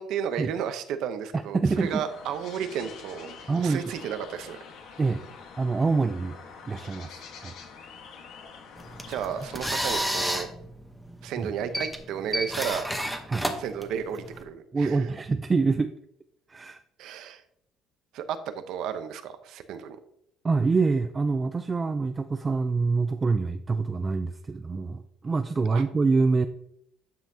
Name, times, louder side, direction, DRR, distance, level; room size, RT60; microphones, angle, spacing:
voice 1, 0.0-4.6 9.1-10.5 11.2-12.9 13.6-15.0 17.0-17.4 18.1-18.4 18.7-20.0 25.7-25.8, right 8 dB, 70° right, 9 dB, 0.8 m, -33 dB
voice 2, 1.5-2.1 3.5-3.8 5.0-5.2 5.6-6.4 6.7-7.5 11.4-11.5 13.3-13.5 14.7-15.9 16.5-16.8 20.4-26.5, right 4 dB, 20° right, 9 dB, 0.3 m, -25 dB
sound 1, 1.7-9.7, left 5 dB, 70° left, 1.2 m, -46 dB
sound 2, 8.8-14.4, equal, ahead, 0.9 m, -31 dB
10.0 x 5.6 x 2.7 m, 0.74 s
cardioid pair, 135°, 0 cm